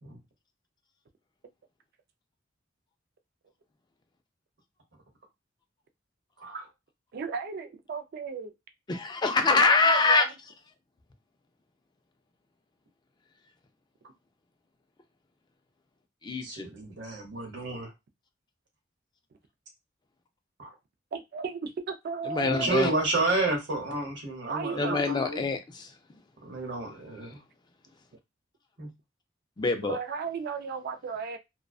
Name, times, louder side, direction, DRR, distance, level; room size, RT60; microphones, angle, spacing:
voice 1, 7.1-8.5 9.5-10.3 21.1-22.8 24.5-25.0 29.8-31.4, right 5 dB, 55° right, 0.4 m, -35 dB
voice 2, 8.9-10.3 16.2-16.7 22.3-22.9 24.8-25.9 29.6-30.0, left 3 dB, 25° left, 0.4 m, -24 dB
voice 3, 16.4-17.9 20.6-20.7 22.4-25.5 26.4-27.4 28.8-28.9, right 2 dB, 70° right, 0.9 m, -30 dB
2.5 x 2.1 x 2.3 m
head